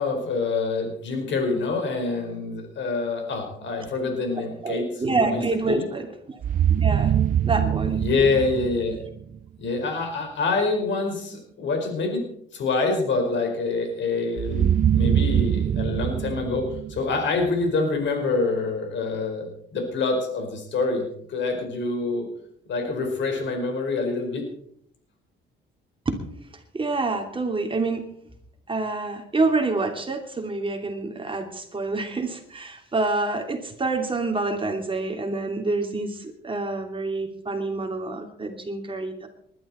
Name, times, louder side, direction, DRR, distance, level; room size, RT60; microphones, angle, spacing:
voice 1, 0.0-4.9 5.3-5.9 8.0-9.0 9.6-12.2 12.5-22.3 22.7-24.4, left 3 dB, 70° left, 3 dB, 4.9 m, -26 dB
voice 2, 4.6-6.4 6.7-7.2 7.4-8.0 26.0-26.2 26.7-28.1 28.7-39.3, right 3 dB, 25° right, 4 dB, 2.8 m, -27 dB
sound 1, 6.4-9.4 14.4-17.6, right 9 dB, 45° right, 0.5 m, -23 dB
20.5 x 12.0 x 4.4 m, 0.68 s
cardioid pair, 90°, 20 cm